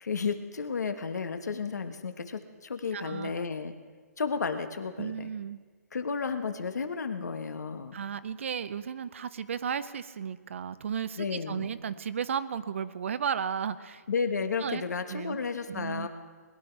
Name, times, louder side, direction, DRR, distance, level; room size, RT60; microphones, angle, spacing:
voice 1, 0.0-3.7 4.2-5.3 5.9-7.9 11.2-11.7 14.1-16.1, left 5 dB, 85° left, 8 dB, 1.4 m, -32 dB
voice 2, 2.9-3.3 5.0-5.6 7.9-14.0 14.6-14.8 15.1-15.4 15.7-16.1, right 7 dB, 50° right, 15 dB, 0.6 m, -34 dB
21.0 x 11.0 x 4.7 m, 1.5 s
hypercardioid pair, 170°, 9 cm